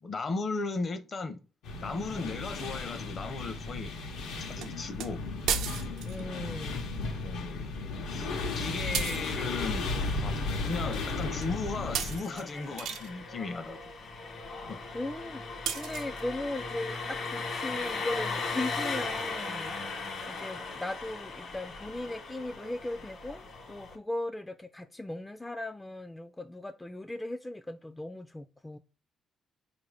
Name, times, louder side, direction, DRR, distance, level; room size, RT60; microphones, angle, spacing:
voice 1, 0.0-1.4 1.8-4.0 4.4-5.2 7.1-7.7 8.1-9.9 10.2-13.9 14.7-14.8, left 3 dB, 45° left, 0.6 m, -36 dB
sound 1, 1.6-12.2, left 3 dB, 85° left, 0.8 m, -35 dB
sound 2, 4.6-4.7 5.0-5.1 5.5-6.2 8.9-9.3 10.9-11.0 11.4-11.6 11.9-13.1 15.7-16.2, right 8 dB, 85° right, 0.4 m, -34 dB
voice 2, 6.0-6.8 14.9-15.4 15.7-19.7 20.3-28.8, left 1 dB, 15° left, 0.3 m, -38 dB
Engine, 9.9-24.0, left 3 dB, 60° left, 1.1 m, -38 dB
4.4 x 2.6 x 3.1 m
cardioid pair, 90°, 0 cm